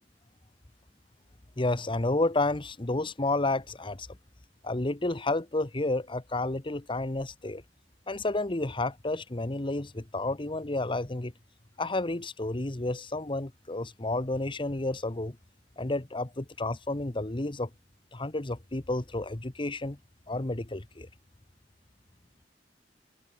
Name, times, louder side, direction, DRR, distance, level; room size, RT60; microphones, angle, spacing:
voice 1, 1.6-4.2 4.6-7.6 8.1-11.3 11.8-15.4 15.8-17.7 18.1-20.0 20.3-21.1, left 2 dB, 30° left, 1.1 m, -31 dB
open air
head